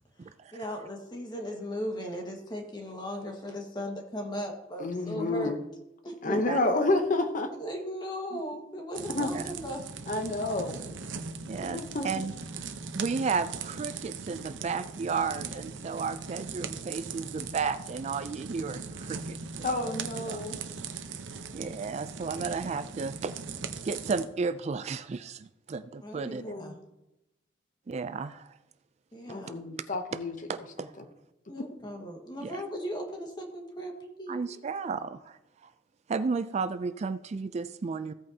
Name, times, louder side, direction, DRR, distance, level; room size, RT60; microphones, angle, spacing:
voice 1, 0.2-5.6 6.0-6.4 7.6-10.9 26.0-26.8 29.1-29.6 31.5-34.6, equal, 25° left, 2 dB, 1.6 m, -38 dB
voice 2, 4.8-5.6 6.2-7.5 9.1-9.3 10.1-10.8 11.6-12.3 19.6-20.6 26.4-26.8 29.3-30.3, left 2 dB, 45° left, 7 dB, 0.8 m, -29 dB
voice 3, 6.3-6.6 9.3-9.5 11.5-12.3 12.9-19.4 20.3-20.4 21.5-23.3 23.8-26.4 27.9-28.5 30.5-30.9 32.4-32.6 34.3-35.4 36.1-38.1, right 5 dB, 35° right, 12 dB, 0.3 m, -33 dB
sound 1, 8.9-24.2, right 5 dB, 75° right, 0.8 m, -39 dB
15.5 x 8.6 x 2.8 m, 0.91 s
head